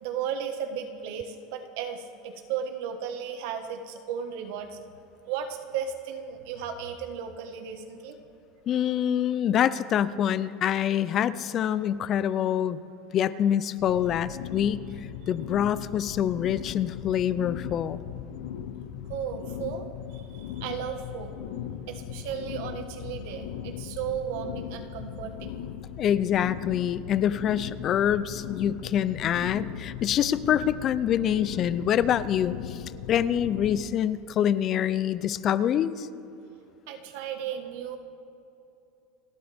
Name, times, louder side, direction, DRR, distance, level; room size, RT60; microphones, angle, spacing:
voice 1, 0.0-4.8 5.2-8.2 19.1-21.3 21.9-25.6 36.9-38.0, right 8 dB, 60° right, 6 dB, 1.4 m, -35 dB
voice 2, 8.7-12.8 13.1-14.8 15.3-18.0 26.0-32.8 33.1-36.1, left 10 dB, 30° left, 16 dB, 0.4 m, -25 dB
sound 1, 13.9-33.9, left 9 dB, 75° left, 0.7 m, -38 dB
29.5 x 11.5 x 3.5 m, 2.8 s
cardioid pair, 175°, 0 cm